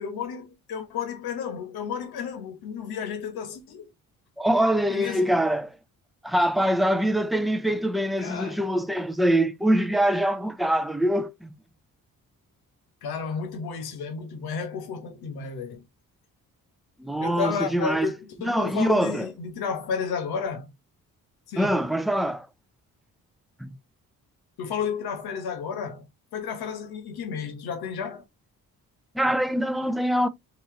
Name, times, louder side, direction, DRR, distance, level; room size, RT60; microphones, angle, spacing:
voice 1, 0.0-3.8 4.9-5.3 8.2-8.7 13.0-15.8 17.2-20.7 21.5-21.8 24.6-26.0 26.3-28.2, left 6 dB, 90° left, 1.2 m, -32 dB
voice 2, 4.4-5.7 6.2-11.5 17.0-18.1 18.4-19.3 21.6-22.5 23.6-23.8 29.1-30.3, right 1 dB, ahead, 0.5 m, -24 dB
3.0 x 2.8 x 3.6 m
cardioid pair, 75°, 36 cm